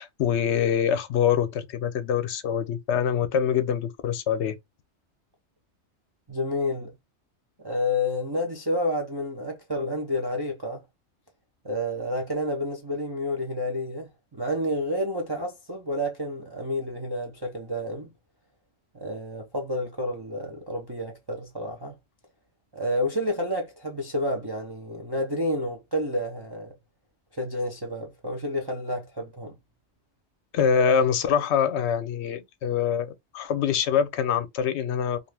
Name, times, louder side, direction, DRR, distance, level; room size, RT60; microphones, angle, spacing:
voice 1, 0.0-4.6 30.5-35.2, left 7 dB, 70° left, 0.8 m, -24 dB
voice 2, 6.3-6.9 7.6-10.8 11.6-18.1 18.9-22.0 22.7-26.7 27.3-29.6, left 1 dB, 35° right, 0.4 m, -30 dB
2.5 x 2.3 x 3.2 m
omnidirectional pair, 1.2 m